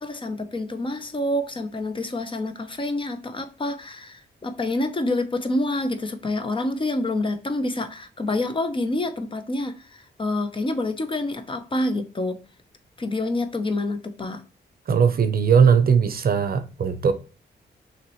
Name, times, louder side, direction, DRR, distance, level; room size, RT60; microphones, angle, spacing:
voice 1, 0.0-12.4 13.0-14.4, left 2 dB, 30° left, 0.6 m, -27 dB
voice 2, 14.9-17.1, right 6 dB, 55° right, 0.7 m, -19 dB
5.8 x 3.1 x 3.0 m
wide cardioid pair, 135°, 18 cm